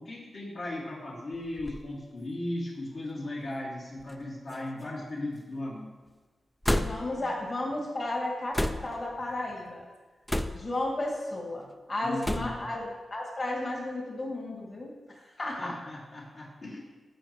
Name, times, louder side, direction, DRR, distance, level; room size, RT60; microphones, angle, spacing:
voice 1, 0.0-5.9 12.0-12.9 15.4-16.8, left 1 dB, 60° left, -6 dB, 1.9 m, -37 dB
sound 1, 1.3-1.8 2.7-2.8 4.0-4.2 4.5-5.1 6.6-7.2 8.5-9.1 10.3-10.8 12.2-12.7, left 1 dB, 10° left, 0.4 m, -31 dB
voice 2, 6.8-9.8 10.5-12.8 13.1-15.7, left 2 dB, 45° left, -3 dB, 2.2 m, -33 dB
14.0 x 5.2 x 3.0 m, 1.3 s
cardioid pair, 70°, 0 cm